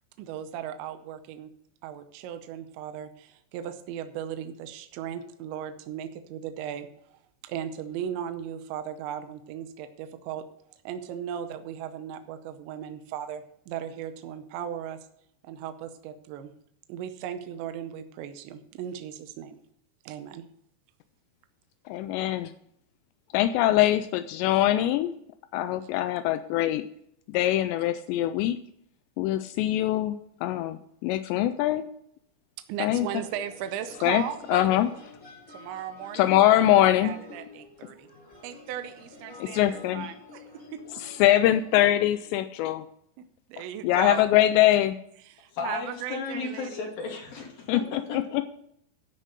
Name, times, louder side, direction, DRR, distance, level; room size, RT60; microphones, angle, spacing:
voice 1, 0.2-1.5 1.8-6.9 7.4-10.4 10.8-15.0 15.4-16.5 16.9-19.6 20.0-20.4 32.7-34.7 35.5-38.1 38.4-40.8 43.5-44.2 45.3-46.9, right 10 dB, 85° right, 9 dB, 3.1 m, -37 dB
voice 2, 21.9-22.5 23.3-25.1 25.5-26.8 27.3-28.6 29.2-31.9 32.8-33.1 34.0-34.2 34.5-34.9 36.1-37.2 39.4-40.1 41.0-42.9 43.8-45.0 47.7-48.4, left 13 dB, 85° left, 10 dB, 2.7 m, -23 dB
sound 1, 32.8-42.1, left 3 dB, 20° left, 3.3 m, -49 dB
voice 3, 45.5-48.4, left 4 dB, 60° left, 0 dB, 3.7 m, -34 dB
13.0 x 5.8 x 6.7 m, 0.71 s
omnidirectional pair, 5.1 m